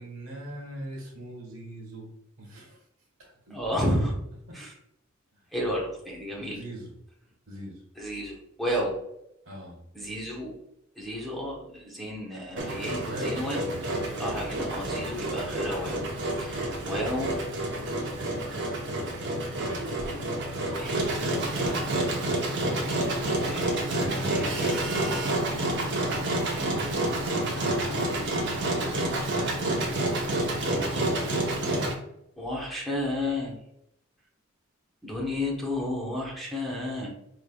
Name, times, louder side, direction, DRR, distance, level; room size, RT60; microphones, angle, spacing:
voice 1, 0.0-2.1 2.4-2.8 3.2-3.6 4.5-4.6 6.5-6.9 7.5-7.8 9.4-9.8 12.9-13.4 23.9-25.1 26.5-28.0 28.4-29.0, right 1 dB, 85° right, 0 dB, 1.3 m, -41 dB
voice 2, 3.5-4.1 4.5-4.7 5.5-6.6 8.0-9.0 9.9-10.5 10.9-13.6 13.9-16.0 16.4-17.3 20.0-20.2 20.7-21.1 23.5-25.3 32.4-33.5 35.0-37.1, left 1 dB, ahead, -4 dB, 1.0 m, -32 dB
Engine, 12.6-31.9, right 1 dB, 60° right, 0.8 m, -29 dB
4.8 x 3.3 x 2.3 m, 0.79 s
head